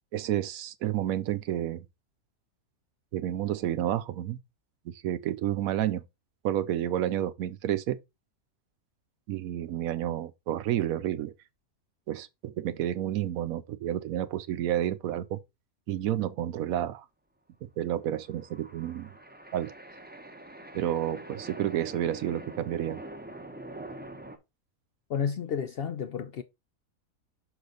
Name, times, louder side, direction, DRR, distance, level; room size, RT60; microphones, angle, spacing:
voice 1, 0.1-1.9 3.1-4.4 5.0-6.0 6.4-8.0 9.3-11.3 12.1-15.4 15.9-17.0 17.6-19.1 19.5-19.7 20.7-23.0, right 12 dB, 90° right, 1.1 m, -30 dB
sound 1, 18.0-24.4, right 1 dB, 10° right, 0.6 m, -45 dB
voice 2, 25.1-26.4, left 7 dB, 65° left, 0.6 m, -31 dB
6.2 x 5.0 x 3.9 m
omnidirectional pair, 1.5 m